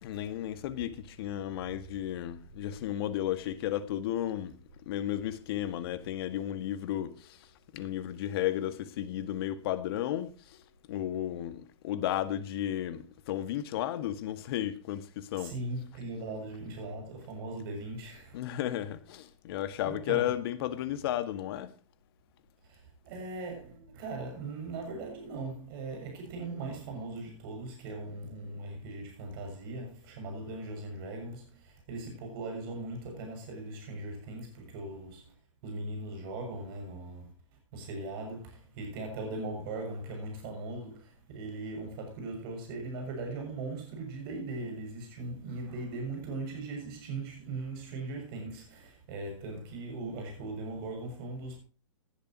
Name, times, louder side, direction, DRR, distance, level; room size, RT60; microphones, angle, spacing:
voice 1, 0.0-4.6 4.9-7.5 7.7-10.6 10.9-15.5 18.3-21.7, left 12 dB, 50° left, 1.8 m, -33 dB
voice 2, 15.4-18.4 19.8-20.3 22.7-22.8 23.0-35.3 35.6-37.3 37.7-51.6, right 2 dB, 45° right, 6.8 m, -39 dB
19.5 x 11.0 x 2.9 m
hypercardioid pair, 120°, 16 cm